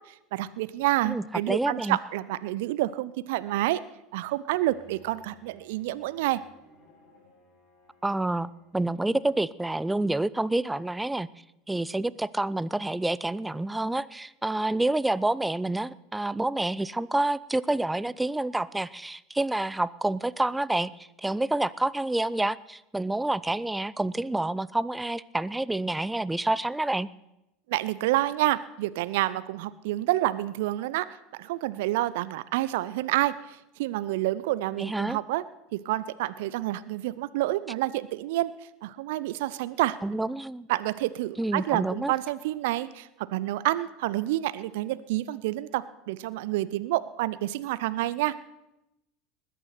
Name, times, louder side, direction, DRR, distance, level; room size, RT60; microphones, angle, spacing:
voice 1, 0.1-3.8 4.1-6.4 27.7-31.1 31.3-35.4 35.7-38.5 38.8-40.0 40.7-48.3, right 16 dB, 65° right, 16 dB, 0.5 m, -28 dB
voice 2, 1.1-2.0 8.0-11.3 11.7-20.9 21.2-27.1 34.8-35.2 40.0-40.7 41.4-42.1, right 2 dB, 10° right, 19 dB, 0.5 m, -28 dB
Bowed string instrument, 4.5-9.3, left 2 dB, 50° left, 7.7 m, -59 dB
20.0 x 9.3 x 5.8 m, 0.91 s
hypercardioid pair, 75°, 0 cm